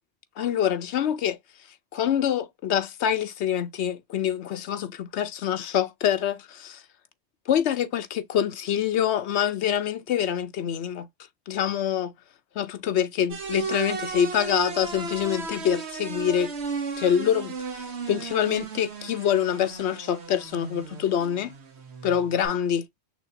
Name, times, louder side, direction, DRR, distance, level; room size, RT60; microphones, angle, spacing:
voice 1, 0.4-1.4 1.9-6.8 7.5-11.1 11.5-12.1 12.6-16.5 17.0-21.5 22.0-22.8, left 9 dB, 85° left, 0.9 m, -25 dB
sound 1, 13.3-22.5, right 4 dB, 80° right, 1.3 m, -35 dB
6.2 x 2.7 x 2.5 m
omnidirectional pair, 1.1 m